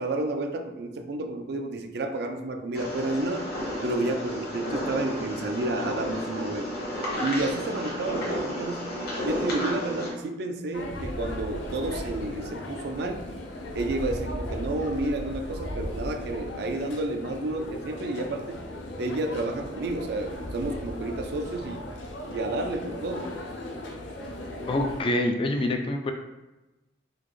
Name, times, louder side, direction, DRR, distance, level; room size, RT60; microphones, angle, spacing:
voice 1, 0.0-3.5 3.8-6.8 7.2-8.8 9.2-13.2 13.7-18.6 19.0-21.8 22.3-23.3, right 2 dB, 60° right, 6 dB, 0.4 m, -30 dB
sound 1, 2.7-10.1, equal, 60° left, 1.0 m, -32 dB
sound 2, 10.7-25.0, left 1 dB, 85° left, 0.5 m, -37 dB
voice 2, 24.7-26.1, left 1 dB, 30° left, 4 dB, 0.3 m, -26 dB
3.9 x 2.4 x 3.1 m, 1.0 s
head